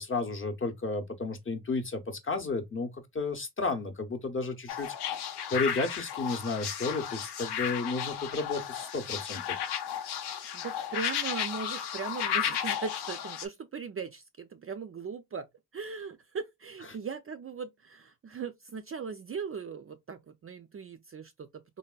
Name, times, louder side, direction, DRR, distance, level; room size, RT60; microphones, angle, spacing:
voice 1, 0.0-5.1 5.5-9.6, left 3 dB, 30° left, 0.7 m, -33 dB
sound 1, 4.7-13.5, left 9 dB, 80° left, 0.6 m, -34 dB
voice 2, 10.5-15.5 15.7-21.8, right 5 dB, 35° right, 0.4 m, -39 dB
3.4 x 2.2 x 2.3 m
cardioid pair, 65°, 39 cm